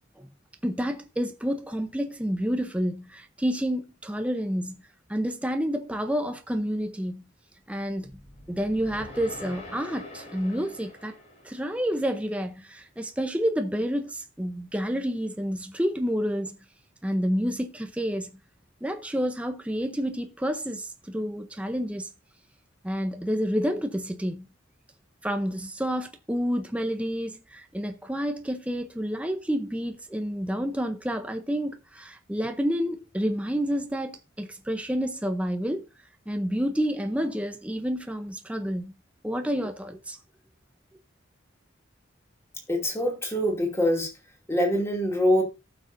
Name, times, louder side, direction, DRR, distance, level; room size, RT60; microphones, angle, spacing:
voice 1, 0.6-4.8 5.1-7.3 7.7-8.1 8.5-11.2 11.4-16.6 17.0-18.3 18.8-22.1 22.8-24.5 25.2-35.8 36.3-38.9 39.2-40.2, equal, 5° right, 0.6 m, -29 dB
sound 1, 7.9-12.3, left 2 dB, 35° left, 3.1 m, -45 dB
voice 2, 42.7-44.1 44.5-45.4, equal, 15° left, 2.5 m, -24 dB
18.0 x 6.1 x 2.6 m
head